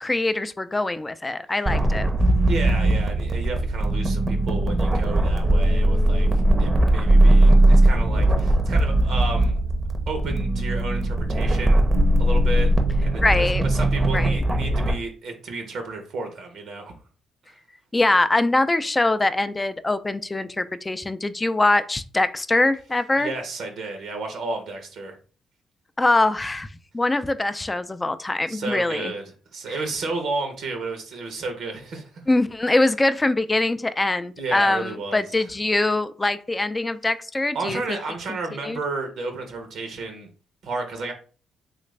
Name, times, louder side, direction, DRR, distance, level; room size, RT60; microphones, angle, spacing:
voice 1, 0.0-2.1 13.2-13.6 14.1-14.4 17.9-23.3 26.0-26.7 26.9-29.1 29.7-29.8 32.3-38.0 38.6-38.8, left 2 dB, 20° left, 12 dB, 0.3 m, -23 dB
sound 1, 1.7-14.9, right 1 dB, 25° right, 0.6 m, -19 dB
voice 2, 2.5-9.6 10.1-11.9 12.2-12.7 13.0-16.9 17.5-17.6 23.2-25.2 28.5-32.1 34.4-35.5 37.5-40.3 40.6-41.1, right 3 dB, 70° right, 5 dB, 0.7 m, -32 dB
3.3 x 2.4 x 3.1 m, 0.39 s
cardioid pair, 90°, 0 cm